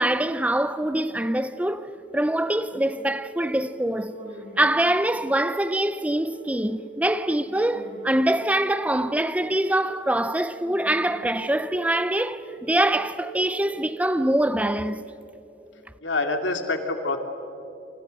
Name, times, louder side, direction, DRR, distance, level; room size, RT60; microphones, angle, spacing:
voice 1, 0.0-4.2 4.6-15.0, right 1 dB, 10° right, 0.6 m, -24 dB
sound 1, 1.0-14.0, right 3 dB, 25° right, 5.9 m, -44 dB
voice 2, 16.0-17.2, left 2 dB, 90° left, 2.6 m, -26 dB
28.5 x 28.0 x 6.5 m
head